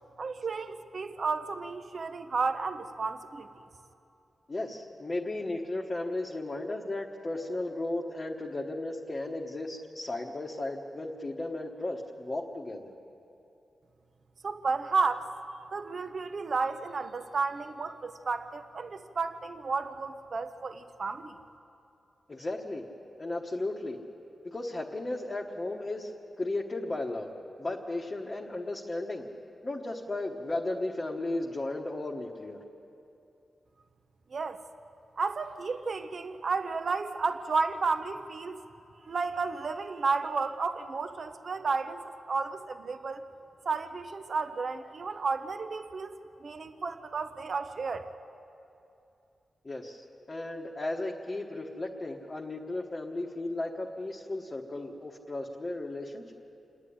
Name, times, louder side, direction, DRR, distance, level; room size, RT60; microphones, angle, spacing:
voice 1, 0.2-3.5 14.4-15.3 15.7-21.4 34.3-34.6 35.2-38.6 39.0-43.3 43.6-48.1, right 4 dB, 45° right, 9 dB, 0.8 m, -32 dB
voice 2, 4.5-12.9 22.3-22.8 23.2-24.0 24.4-26.1 26.4-27.3 27.6-29.2 29.6-32.6 49.6-56.3, left 2 dB, 20° left, -2 dB, 1.1 m, -35 dB
28.0 x 9.9 x 10.0 m, 2.8 s
wide cardioid pair, 170°, 0 cm